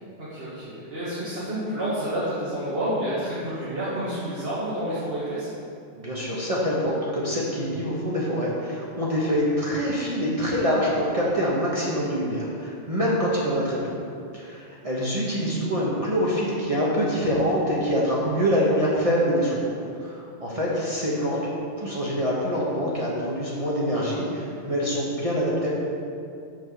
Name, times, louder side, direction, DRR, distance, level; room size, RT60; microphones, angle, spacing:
voice 1, 0.2-5.5 20.5-20.6, right 1 dB, 50° right, -10 dB, 1.9 m, -29 dB
voice 2, 6.0-13.8 14.3-19.7 20.0-21.4 21.8-25.7, equal, 30° right, -6 dB, 1.3 m, -25 dB
6.5 x 5.8 x 7.1 m, 2.5 s
omnidirectional pair, 1.3 m